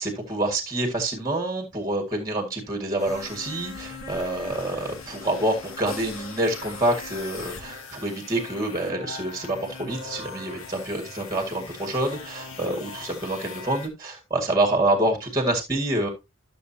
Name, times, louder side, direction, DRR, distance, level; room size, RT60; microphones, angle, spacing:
voice 1, 0.0-16.1, right 1 dB, 15° right, 3 dB, 1.9 m, -27 dB
sound 1, 3.0-13.9, left 4 dB, 80° left, 2.1 m, -40 dB
12.0 x 6.9 x 2.8 m, 0.24 s
head